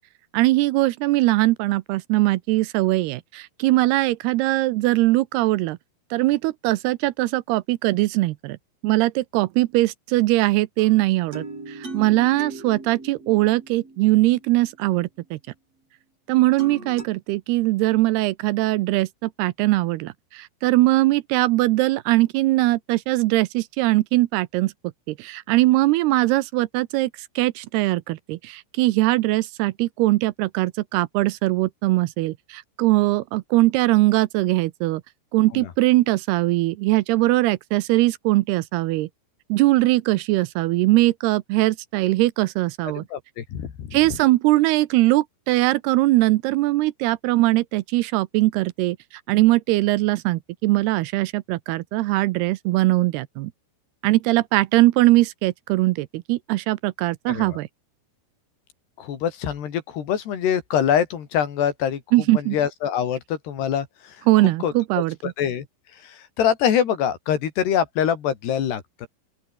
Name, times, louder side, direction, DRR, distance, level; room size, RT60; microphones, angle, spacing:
voice 1, 0.3-5.8 6.1-8.6 8.8-15.4 16.3-24.7 25.1-27.1 27.4-35.0 35.3-39.1 39.5-43.0 43.9-49.0 49.3-53.5 54.0-57.7 62.1-62.6 64.3-65.2, right 18 dB, 80° right, 2.6 m, -21 dB
sound 1, 10.8-14.8 16.6-17.1, right 3 dB, 35° right, 8.7 m, -39 dB
voice 2, 43.0-44.2 57.3-57.6 59.0-62.0 62.3-64.2 64.6-64.7 65.2-65.7 66.0-69.1, left 9 dB, 75° left, 4.9 m, -24 dB
open air
omnidirectional pair, 4.8 m